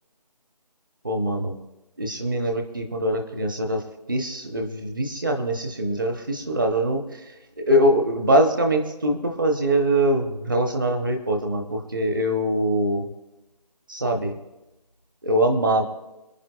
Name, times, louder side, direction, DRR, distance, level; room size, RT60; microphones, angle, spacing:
voice 1, 1.0-1.5 2.0-3.8 4.1-13.1 13.9-14.4 15.2-15.8, right 1 dB, 30° right, 4 dB, 0.9 m, -23 dB
27.0 x 9.3 x 2.2 m, 0.99 s
figure-of-eight pair, 170°, 21 cm